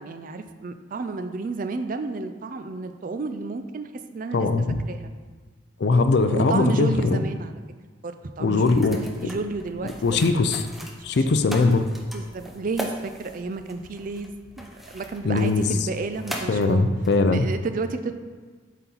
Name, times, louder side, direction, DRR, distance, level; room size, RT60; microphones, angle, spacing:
voice 1, 0.0-4.5 4.9-5.1 6.3-7.5 8.0-10.2 10.9-11.0 12.1-16.8 17.3-18.1, right 3 dB, 45° right, 9 dB, 0.4 m, -31 dB
voice 2, 4.3-4.8 5.8-7.2 8.4-9.0 10.0-10.6 11.0-11.8 15.2-15.7 16.5-17.5, left 3 dB, 60° left, 9 dB, 0.4 m, -20 dB
sound 1, 8.6-17.5, equal, ahead, 0.6 m, -40 dB
8.1 x 4.2 x 4.0 m, 1.5 s
head